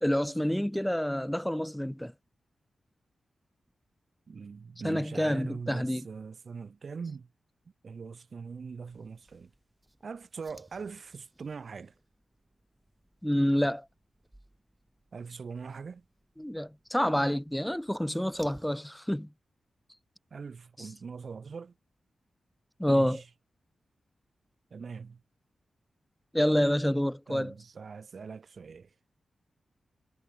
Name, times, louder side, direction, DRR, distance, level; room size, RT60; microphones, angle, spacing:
voice 1, 0.0-2.1 4.8-6.1 13.2-13.9 16.4-19.3 20.8-20.9 22.8-23.2 26.3-27.5, equal, 5° left, 0.6 m, -28 dB
voice 2, 4.3-7.3 7.8-9.5 10.0-11.9 15.1-16.0 20.3-21.7 22.9-23.2 24.7-25.2 27.3-28.9, right 5 dB, 65° right, 0.4 m, -42 dB
sound 1, 8.8-18.7, right 1 dB, 15° right, 7.0 m, -61 dB
cardioid pair, 55°, 0 cm